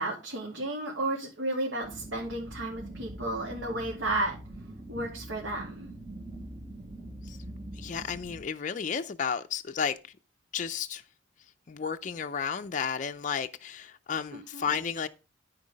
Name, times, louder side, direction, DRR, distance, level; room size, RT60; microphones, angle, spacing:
voice 1, 0.0-4.3 4.9-5.9 14.3-14.7, right 2 dB, 75° right, 2.7 m, -33 dB
sound 1, 1.8-8.4, right 1 dB, 25° right, 0.9 m, -43 dB
voice 2, 7.8-10.1 10.5-11.0 11.7-15.1, left 6 dB, 40° left, 0.4 m, -32 dB
13.5 x 4.6 x 5.1 m
head